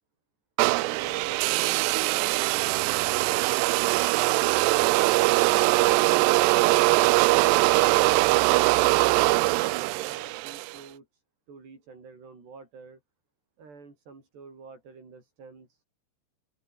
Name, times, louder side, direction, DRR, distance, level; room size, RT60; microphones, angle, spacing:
voice 1, 0.6-3.2 9.4-11.2 11.5-13.0 13.6-15.8, right 4 dB, 60° right, 9.7 m, -47 dB
sound 1, 0.6-10.8, right 23 dB, 85° right, 2.4 m, -22 dB
open air
omnidirectional pair, 5.3 m